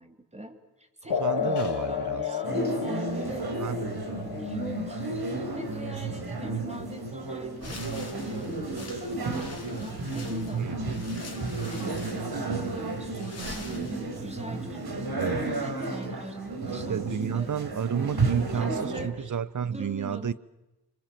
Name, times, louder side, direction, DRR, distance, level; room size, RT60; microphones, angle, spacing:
voice 1, 0.0-3.5 4.4-9.2 9.8-10.9 11.6-17.0 17.3-17.5 18.2-19.4 19.6-20.3, right 1 dB, 15° right, 3.3 m, -42 dB
voice 2, 1.0-2.3 3.6-3.9 10.5-10.9 15.2-15.4 16.9-20.3, right 7 dB, 50° right, 0.9 m, -31 dB
sound 1, 1.1-8.1, left 8 dB, 85° left, 1.7 m, -34 dB
sound 2, 2.4-19.1, right 3 dB, 70° right, 4.2 m, -32 dB
sound 3, 7.6-14.4, left 3 dB, 40° left, 3.8 m, -46 dB
26.0 x 25.0 x 7.7 m
wide cardioid pair, 80°, 39 cm